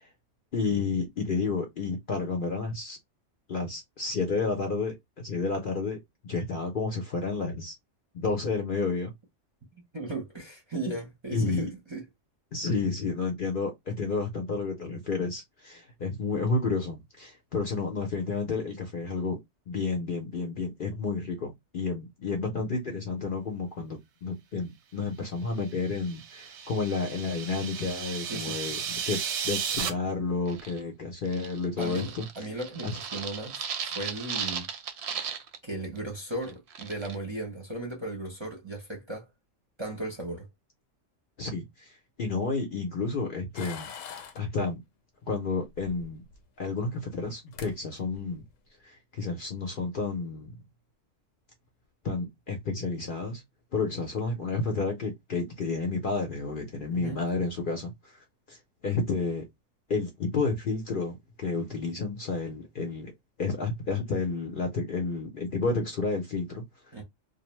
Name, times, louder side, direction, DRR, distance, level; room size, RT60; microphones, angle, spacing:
voice 1, 0.5-3.0 3.5-6.0 6.2-7.7 8.1-9.1 11.3-11.7 12.5-19.4 19.7-32.5 32.8-33.0 41.4-44.8 45.3-46.2 46.6-48.4 48.8-50.5 52.0-53.4 53.7-58.2 58.5-59.4 59.9-63.1 63.4-66.9, left 4 dB, 55° left, 0.6 m, -31 dB
voice 2, 9.9-12.0 28.3-28.6 31.8-34.7 35.6-39.3 39.8-40.5 56.9-57.2 66.9-67.0, right 2 dB, 30° right, 0.6 m, -36 dB
sound 1, 25.7-29.9, right 7 dB, 90° right, 1.0 m, -34 dB
sound 2, 30.5-30.8 31.2-35.6 35.8-36.0 36.4-37.1, right 7 dB, 65° right, 0.7 m, -36 dB
sound 3, 43.6-44.4 45.7-46.4 47.3-47.4 47.5-47.7 48.1-48.5, left 7 dB, 80° left, 0.9 m, -42 dB
2.5 x 2.0 x 3.0 m
omnidirectional pair, 1.3 m